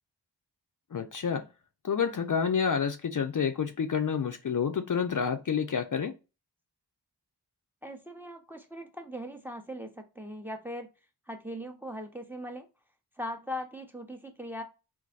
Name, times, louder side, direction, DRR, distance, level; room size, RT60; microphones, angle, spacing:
voice 1, 0.9-1.5 1.8-6.1, left 6 dB, 50° left, 0.5 m, -29 dB
voice 2, 7.8-10.9 11.3-12.7 13.2-14.6, equal, 5° right, 0.6 m, -39 dB
3.9 x 2.5 x 2.4 m
wide cardioid pair, 60°, 42 cm